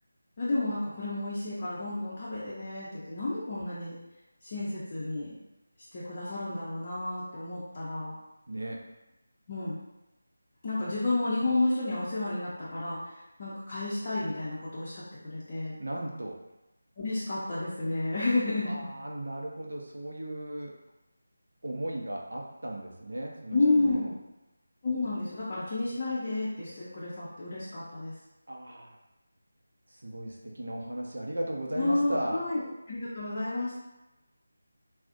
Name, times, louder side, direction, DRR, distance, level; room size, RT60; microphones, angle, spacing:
voice 1, 0.4-4.0 4.4-5.3 5.9-8.2 9.5-9.8 10.6-13.1 13.4-15.8 17.0-18.9 23.5-24.2 24.8-28.1 31.7-33.8, left 2 dB, 35° left, -10 dB, 0.5 m, -31 dB
voice 2, 8.5-8.8 15.8-16.4 18.6-20.8 21.6-24.1 28.5-29.0 29.9-32.4, right 1 dB, 70° right, -1 dB, 0.5 m, -36 dB
2.4 x 2.0 x 2.5 m, 0.98 s
figure-of-eight pair, 165°, 0 cm